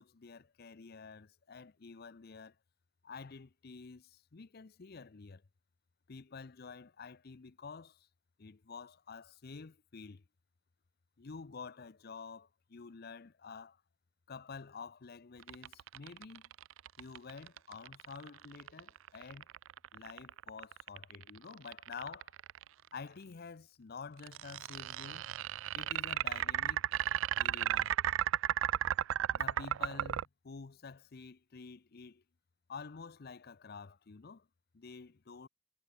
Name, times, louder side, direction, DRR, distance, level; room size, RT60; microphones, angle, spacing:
voice 1, 0.0-2.5 3.0-5.4 6.1-8.1 8.4-10.2 11.2-13.8 14.3-16.5 17.0-19.5 19.9-22.3 22.9-25.3 25.7-26.8 27.4-27.9 29.3-32.2 32.7-34.5 34.7-35.5, left 5 dB, 50° left, 0.6 m, -49 dB
sound 1, 15.4-22.7 24.2-30.2, right 11 dB, 75° right, 0.3 m, -34 dB
head